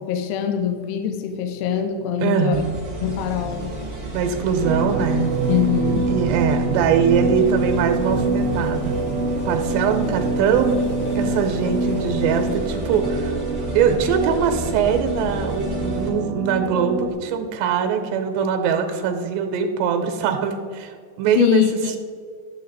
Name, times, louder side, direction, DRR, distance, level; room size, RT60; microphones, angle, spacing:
voice 1, 0.0-2.6 3.0-3.7 5.5-6.1 21.4-22.0, left 9 dB, 75° left, 7 dB, 2.6 m, -23 dB
voice 2, 2.2-2.8 4.1-5.3 6.1-9.0 9.5-10.8 11.2-13.4 13.7-21.6, right 7 dB, 80° right, 6 dB, 2.9 m, -22 dB
sound 1, 2.5-16.1, right 1 dB, 25° right, 1.2 m, -33 dB
sound 2, 3.1-16.1, left 1 dB, 60° left, 3.4 m, -37 dB
sound 3, 4.6-17.1, right 3 dB, 60° right, 1.7 m, -25 dB
12.0 x 7.4 x 4.0 m, 2.1 s
omnidirectional pair, 5.1 m